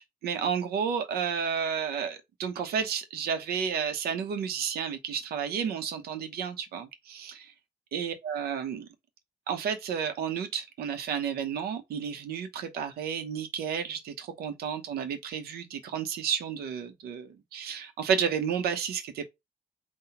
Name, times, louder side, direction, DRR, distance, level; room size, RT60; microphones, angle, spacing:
voice 1, 0.0-7.4 7.9-8.9 9.5-19.2, right 7 dB, 85° right, 0.9 m, -31 dB
4.0 x 2.4 x 4.2 m
cardioid pair, 70°, 16 cm